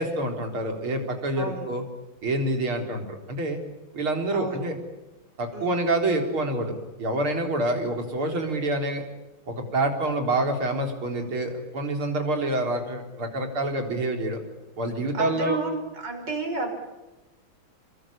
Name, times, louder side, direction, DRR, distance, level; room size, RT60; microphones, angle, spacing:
voice 1, 0.0-1.8 2.2-3.6 3.9-4.7 5.4-9.0 9.5-14.4 14.8-15.6, right 1 dB, 80° right, 4 dB, 4.9 m, -27 dB
voice 2, 1.4-1.7 4.3-4.6 5.5-5.9 15.1-16.8, right 3 dB, 55° right, 4 dB, 6.4 m, -31 dB
29.0 x 23.0 x 8.9 m, 1.0 s
omnidirectional pair, 2.3 m